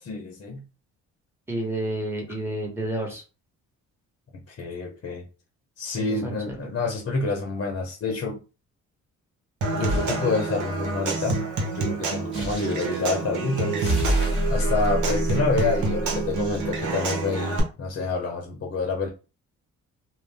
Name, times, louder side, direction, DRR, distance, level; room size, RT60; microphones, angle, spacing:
voice 1, 0.0-0.6 4.5-5.2 5.8-8.4 9.7-11.4 11.7-14.0 14.5-19.1, left 3 dB, 45° left, 0.7 m, -28 dB
voice 2, 1.5-3.2 5.9-6.6, right 1 dB, 10° right, 1.2 m, -30 dB
Human voice / Acoustic guitar / Percussion, 9.6-17.6, right 4 dB, 75° right, 0.9 m, -28 dB
sound 1, 9.9-10.2 12.3-13.0 13.8-16.4, right 1 dB, 40° right, 1.4 m, -26 dB
2.5 x 2.1 x 3.4 m
cardioid pair, 90°, 30 cm